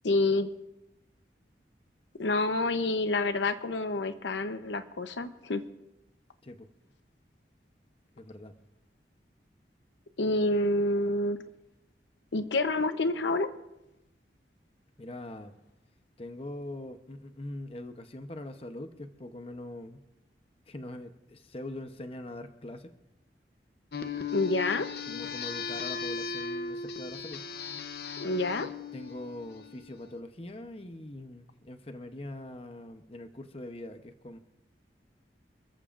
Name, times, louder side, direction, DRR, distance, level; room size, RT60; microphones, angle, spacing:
voice 1, 0.0-0.5 2.2-5.6 10.2-11.4 12.3-13.5 24.3-24.9 28.2-28.7, left 2 dB, 90° left, 9 dB, 0.9 m, -28 dB
voice 2, 8.1-8.5 15.0-15.5 16.2-20.0 20.7-22.9 25.1-27.5 28.9-34.4, left 1 dB, 35° left, 8 dB, 0.8 m, -42 dB
sound 1, 23.9-29.9, left 5 dB, 60° left, 0.8 m, -37 dB
28.5 x 14.0 x 2.5 m, 0.92 s
head